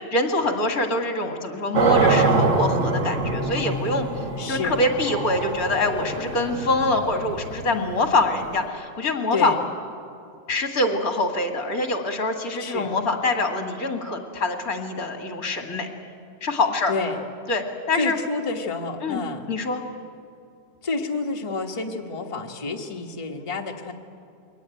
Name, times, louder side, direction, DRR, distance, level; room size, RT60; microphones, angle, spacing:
voice 1, 0.1-4.1 4.5-9.6 10.5-15.9 16.4-16.9 17.5-18.2 19.0-19.2 19.5-19.8, left 2 dB, 50° left, 5 dB, 2.3 m, -24 dB
sound 1, 1.7-8.7, right 3 dB, 45° right, 1.5 m, -25 dB
voice 2, 4.4-4.8 9.3-9.6 12.6-12.9 16.9-17.2 18.0-19.4 20.8-23.9, left 3 dB, 20° left, 2 dB, 1.2 m, -29 dB
22.5 x 18.5 x 9.2 m, 2.5 s
omnidirectional pair, 2.0 m